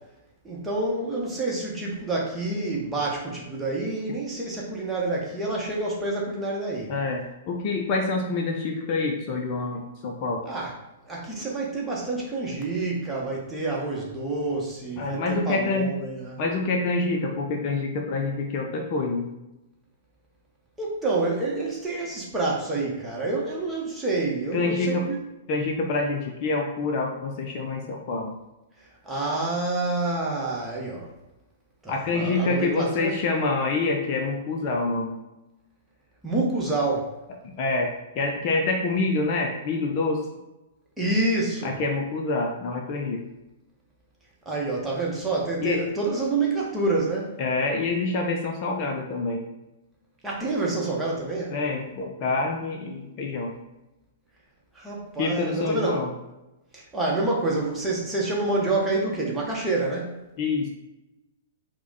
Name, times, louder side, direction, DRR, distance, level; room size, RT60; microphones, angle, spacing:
voice 1, 0.4-6.9 10.4-10.7 11.1-16.4 20.8-25.2 29.0-31.1 31.8-33.1 36.2-37.1 41.0-41.8 44.4-47.3 50.2-51.6 54.7-56.1 56.7-60.2, right 2 dB, 10° right, -4 dB, 1.0 m, -28 dB
voice 2, 6.9-10.4 15.0-15.9 16.4-19.2 24.5-25.0 25.5-28.3 31.9-35.1 37.6-37.9 38.1-40.2 41.6-43.2 45.6-45.8 47.4-49.4 51.5-53.5 55.2-56.1 60.4-60.7, left 3 dB, 40° left, 1 dB, 0.5 m, -26 dB
4.6 x 2.2 x 3.9 m, 1.0 s
figure-of-eight pair, 105°, 0 cm